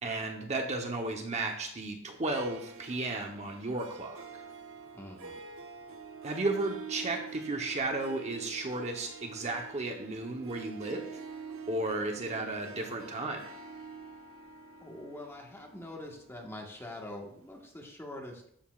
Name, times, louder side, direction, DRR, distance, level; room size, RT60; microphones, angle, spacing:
voice 1, 0.0-4.4 6.2-11.0 11.7-13.5, right 2 dB, 35° right, 3 dB, 0.9 m, -34 dB
Harp, 2.1-17.5, right 6 dB, 85° right, 1.0 m, -47 dB
voice 2, 4.9-5.4 14.8-18.4, left 1 dB, 10° left, 0 dB, 1.4 m, -44 dB
13.0 x 7.0 x 2.4 m, 0.67 s
head